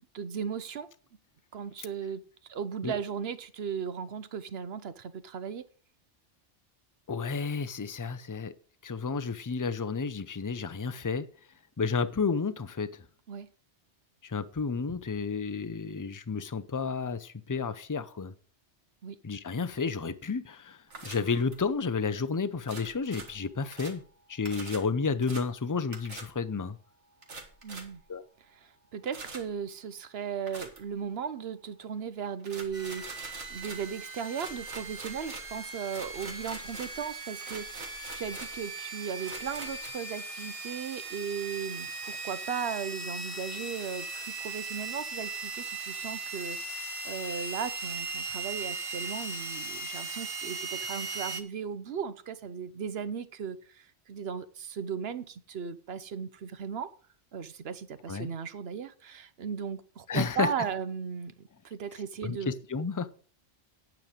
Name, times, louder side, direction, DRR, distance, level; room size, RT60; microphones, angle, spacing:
voice 1, 0.1-0.9 1.5-2.2 2.5-5.6 13.3-13.5 19.0-19.2 27.6-28.0 28.5-56.9 57.3-62.6, right 7 dB, 60° right, 1.0 m, -37 dB
voice 2, 7.1-8.5 8.8-11.3 11.8-13.0 14.2-18.3 19.2-24.0 24.3-26.8 28.1-28.2 58.1-58.3 60.1-60.5 62.2-63.1, left 5 dB, 25° left, 0.5 m, -31 dB
sound 1, 20.9-21.7 22.6-24.1 24.4-24.9 25.2-25.5 25.9-26.3 27.2-28.0 29.1-29.5 30.5-30.9 32.4-33.9 34.3-37.1 37.4-38.6 39.2-39.9, right 3 dB, 80° right, 2.0 m, -45 dB
sound 2, 32.7-51.4, right 3 dB, 30° right, 1.1 m, -38 dB
9.2 x 8.9 x 5.1 m
omnidirectional pair, 1.2 m